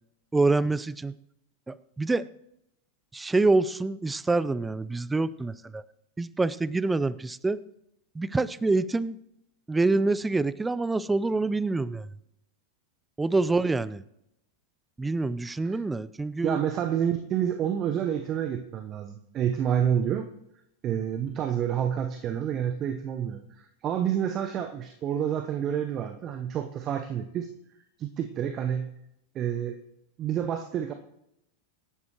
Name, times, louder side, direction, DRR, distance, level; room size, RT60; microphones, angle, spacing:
voice 1, 0.3-1.1 1.7-2.3 3.1-5.8 6.2-7.6 8.2-9.2 9.7-12.1 13.2-14.0 15.0-16.6, right 3 dB, 10° right, 19 dB, 0.5 m, -26 dB
voice 2, 16.4-20.3 20.8-27.5 28.0-28.9 29.3-29.8 30.2-30.9, right 9 dB, 30° right, 8 dB, 0.9 m, -28 dB
25.0 x 11.5 x 3.0 m, 0.82 s
figure-of-eight pair, 90°, 0 cm